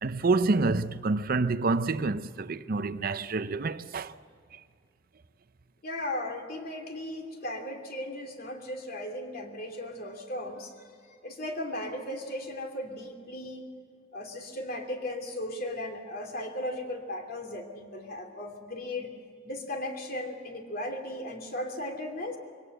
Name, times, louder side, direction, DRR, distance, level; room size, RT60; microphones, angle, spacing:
voice 1, 0.0-4.1 4.5-4.6, right 3 dB, 50° right, 0.6 m, -27 dB
voice 2, 5.8-10.7 11.1-13.7 14.1-19.1 19.4-22.4, left 1 dB, 50° left, 2.9 m, -36 dB
23.5 x 18.0 x 8.0 m
head